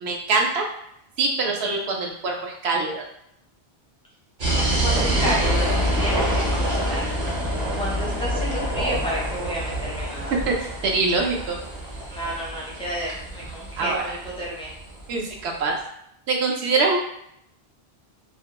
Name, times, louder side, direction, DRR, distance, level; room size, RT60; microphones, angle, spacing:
voice 1, 0.0-0.6 1.2-3.0 10.5-11.6 13.8-14.0 15.1-15.8 16.3-17.0, right 3 dB, 80° right, 0 dB, 0.8 m, -24 dB
sound 1, 4.4-15.1, right 1 dB, 50° right, 0.8 m, -26 dB
voice 2, 4.8-7.3 7.7-10.4 12.1-14.7, equal, 5° left, -5 dB, 0.4 m, -31 dB
2.4 x 2.1 x 2.8 m, 0.74 s
omnidirectional pair, 1.1 m